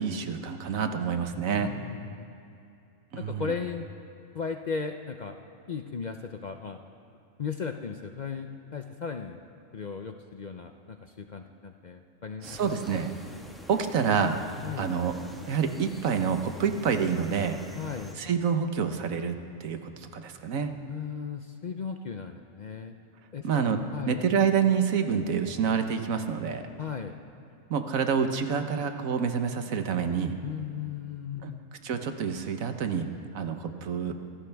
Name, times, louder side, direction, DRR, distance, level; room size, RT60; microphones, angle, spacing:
voice 1, 0.0-1.7 3.1-3.5 12.4-13.1 13.7-14.4 14.8-15.2 15.5-17.6 18.2-20.7 23.4-23.8 24.1-26.6 27.7-30.4 31.4-31.5 31.8-33.1 33.3-34.1, right 6 dB, 85° right, 7 dB, 1.4 m, -27 dB
voice 2, 1.6-2.3 3.2-3.9 4.3-5.4 5.7-6.8 7.4-9.4 9.7-13.0 14.6-15.0 17.7-18.2 20.9-22.9 23.3-23.6 23.9-24.2 26.8-27.2 30.4-31.6, left 6 dB, 50° left, 6 dB, 0.5 m, -36 dB
sound 1, 12.4-18.1, equal, ahead, 1.3 m, -46 dB
25.0 x 16.0 x 3.5 m, 2.6 s
omnidirectional pair, 1.4 m